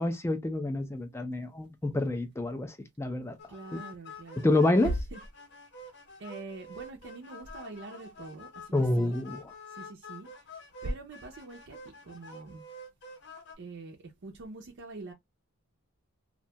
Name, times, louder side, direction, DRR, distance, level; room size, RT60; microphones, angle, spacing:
voice 1, 0.0-3.4 4.4-4.9 8.7-9.4, left 2 dB, 10° left, 0.3 m, -28 dB
sound 1, 3.4-13.6, left 1 dB, 50° left, 0.7 m, -48 dB
voice 2, 3.5-4.5 4.8-5.2 6.2-9.2 9.7-10.3 10.8-12.6 13.6-15.1, right 2 dB, 55° right, 0.5 m, -41 dB
2.6 x 2.2 x 2.7 m
head